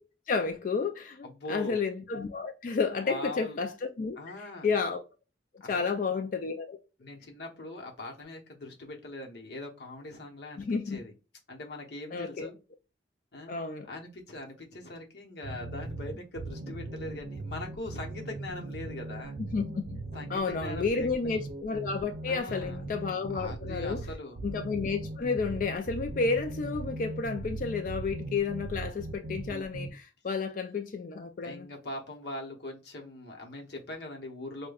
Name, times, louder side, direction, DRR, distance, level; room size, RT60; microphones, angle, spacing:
voice 1, 0.3-4.2 4.6-5.0 5.7-6.8 10.6-11.0 12.1-12.5 13.5-13.9 19.4-19.9 20.3-24.1 24.4-31.7, left 4 dB, 45° left, 0.3 m, -31 dB
voice 2, 1.2-1.8 3.0-3.6 4.2-4.7 5.6-6.2 7.0-11.1 11.5-12.6 13.3-13.5 13.9-19.4 20.1-21.3 22.3-22.8 23.3-24.4 31.4-34.7, left 1 dB, 60° left, 0.9 m, -41 dB
sound 1, 15.4-29.9, right 2 dB, 70° right, 0.5 m, -39 dB
4.8 x 2.2 x 2.3 m
head